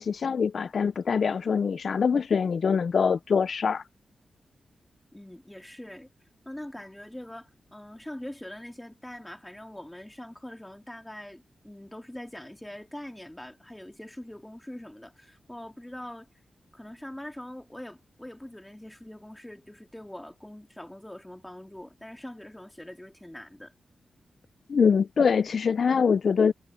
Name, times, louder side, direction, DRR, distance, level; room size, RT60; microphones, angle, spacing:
voice 1, 0.0-3.8 24.7-26.5, left 6 dB, 65° left, 0.4 m, -24 dB
voice 2, 5.1-6.1 6.4-16.3 16.7-23.7, left 1 dB, 10° left, 2.4 m, -43 dB
cardioid pair, 85°, 0 cm